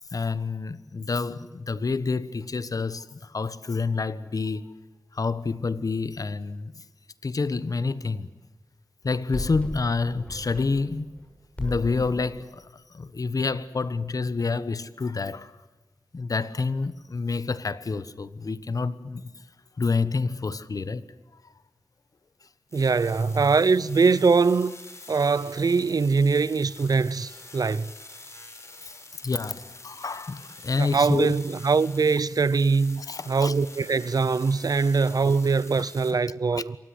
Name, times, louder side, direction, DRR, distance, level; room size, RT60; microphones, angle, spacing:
voice 1, 0.1-4.7 5.1-6.8 7.2-8.3 9.0-11.1 11.6-15.5 16.1-19.3 19.8-21.0 29.2-31.3 33.0-33.6 36.5-36.6, left 4 dB, 60° left, 1.3 m, -28 dB
sound 1, 9.0-11.3 11.6-12.3, left 1 dB, 20° left, 7.0 m, -36 dB
sound 2, 22.7-36.1, left 2 dB, 45° left, 4.9 m, -46 dB
voice 2, 22.7-24.7 25.1-27.9 30.8-36.8, right 4 dB, 70° right, 0.8 m, -22 dB
28.0 x 24.0 x 8.2 m
wide cardioid pair, 85°, 7 cm